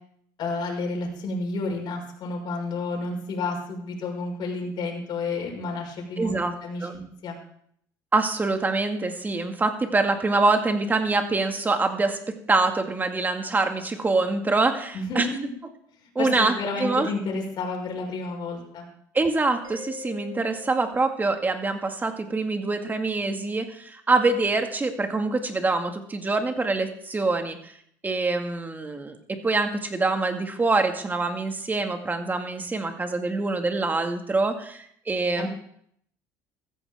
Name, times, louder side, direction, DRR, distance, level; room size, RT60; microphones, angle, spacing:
voice 1, 0.4-7.4 14.9-15.4 16.2-18.9 35.4-35.5, left 3 dB, 50° left, 0 dB, 5.6 m, -31 dB
voice 2, 6.2-6.5 6.8-6.9 8.1-12.2 12.5-15.3 16.2-17.1 19.1-27.7 28.0-35.5, right 3 dB, 20° right, 5 dB, 2.1 m, -25 dB
Mallet percussion, 19.6-22.2, left 6 dB, 45° right, 5.5 m, -44 dB
14.5 x 14.5 x 3.7 m, 0.66 s
supercardioid pair, 105°, 9 cm